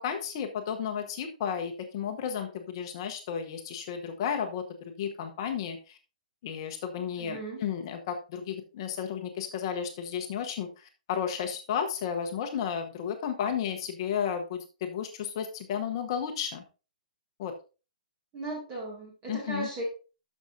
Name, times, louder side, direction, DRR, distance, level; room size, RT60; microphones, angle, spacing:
voice 1, 0.0-4.6 5.0-6.0 6.4-16.6 17.4-17.5 19.3-19.7, left 8 dB, 35° left, 5 dB, 0.9 m, -33 dB
voice 2, 7.2-7.6 18.3-19.8, right 2 dB, 20° right, -3 dB, 2.2 m, -37 dB
12.0 x 6.4 x 2.7 m, 0.33 s
hypercardioid pair, 165°, 4 cm